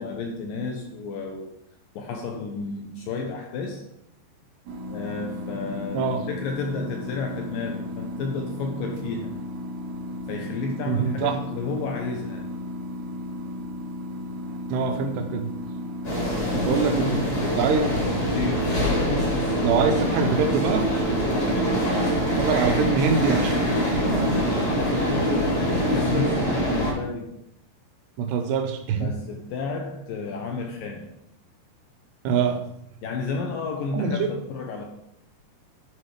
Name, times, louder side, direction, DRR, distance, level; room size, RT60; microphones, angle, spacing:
voice 1, 0.0-1.6 2.0-3.9 4.9-9.3 10.3-12.4 16.2-18.7 21.3-21.7 24.7-27.3 28.9-31.1 33.0-34.8, left 4 dB, 70° left, 2 dB, 2.3 m, -32 dB
sound 1, 4.7-24.4, left 1 dB, 65° right, 1.9 m, -35 dB
voice 2, 10.9-11.4 14.7-15.5 16.5-17.2 17.6-17.9 18.7-19.0 19.6-20.9 22.4-23.6 28.2-29.1 32.2-32.6 33.9-34.3, right 6 dB, 85° right, 6 dB, 3.1 m, -24 dB
sound 2, 16.0-26.9, equal, 25° left, 3.2 m, -24 dB
10.5 x 5.5 x 4.9 m, 0.77 s
omnidirectional pair, 4.8 m